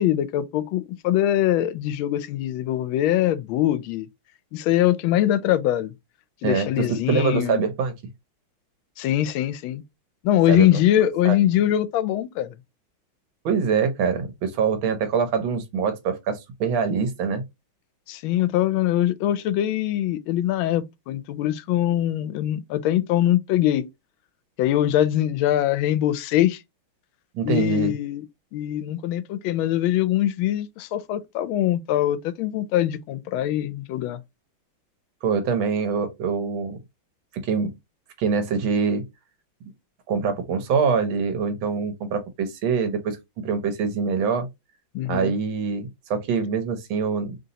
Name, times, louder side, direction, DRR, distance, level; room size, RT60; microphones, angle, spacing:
voice 1, 0.0-4.1 4.5-5.9 6.4-7.7 9.0-9.8 10.2-12.5 18.1-23.9 24.6-26.6 27.4-28.2 28.5-34.2 44.9-45.3, left 12 dB, 85° left, 1.4 m, -22 dB
voice 2, 6.4-7.9 10.5-10.7 11.2-11.4 13.4-17.4 27.3-27.9 35.2-36.8 37.3-37.7 38.2-39.0 40.1-44.5 45.0-47.4, right 5 dB, 80° right, 1.6 m, -24 dB
3.6 x 2.8 x 3.9 m
omnidirectional pair, 2.2 m